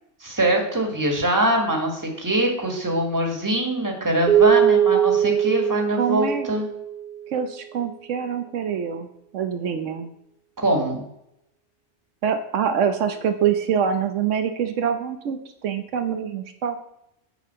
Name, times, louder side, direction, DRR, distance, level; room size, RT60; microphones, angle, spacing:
voice 1, 0.2-6.7 10.6-11.0, right 1 dB, 15° right, 1 dB, 1.6 m, -23 dB
Keyboard (musical), 4.3-7.2, right 9 dB, 50° right, 1.8 m, -20 dB
voice 2, 6.0-6.5 7.3-10.1 12.2-16.8, right 7 dB, 80° right, 7 dB, 1.1 m, -25 dB
7.6 x 5.3 x 6.8 m, 0.79 s
omnidirectional pair, 1.2 m